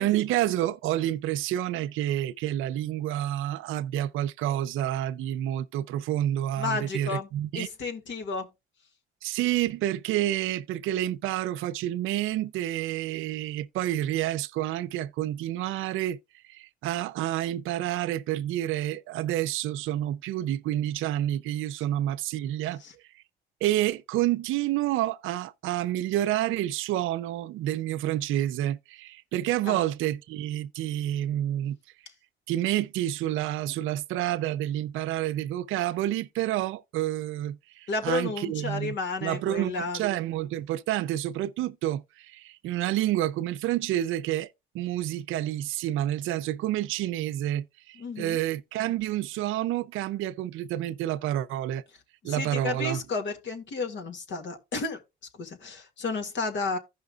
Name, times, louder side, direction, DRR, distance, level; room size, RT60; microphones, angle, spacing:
voice 1, 0.0-7.7 9.2-16.2 16.5-22.8 23.6-31.8 32.5-38.9 39.2-44.5 44.7-51.8 52.2-53.0, right 13 dB, 90° right, 0.5 m, -29 dB
voice 2, 6.6-7.3 7.5-8.5 22.8-22.9 29.7-29.9 37.9-40.1 48.0-48.4 52.2-55.0 55.3-56.8, left 3 dB, 65° left, 2.1 m, -32 dB
15.5 x 5.6 x 2.4 m
cardioid pair, 90°, 20 cm